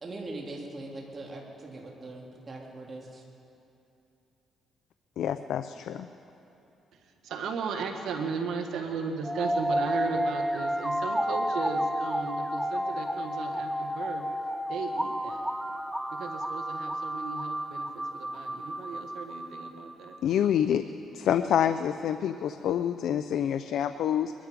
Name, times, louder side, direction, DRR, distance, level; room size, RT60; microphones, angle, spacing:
voice 1, 0.0-3.2, right 2 dB, 35° right, -1 dB, 2.8 m, -41 dB
voice 2, 5.2-6.1 20.2-20.8 21.1-24.3, left 9 dB, 75° left, 10 dB, 0.5 m, -27 dB
voice 3, 6.9-14.2 14.7-15.4 16.1-20.2, right 5 dB, 80° right, 5 dB, 1.6 m, -36 dB
sound 1, 9.2-20.2, equal, 5° right, 0.6 m, -31 dB
22.5 x 12.5 x 5.2 m, 2.8 s
cardioid pair, 90°, 0 cm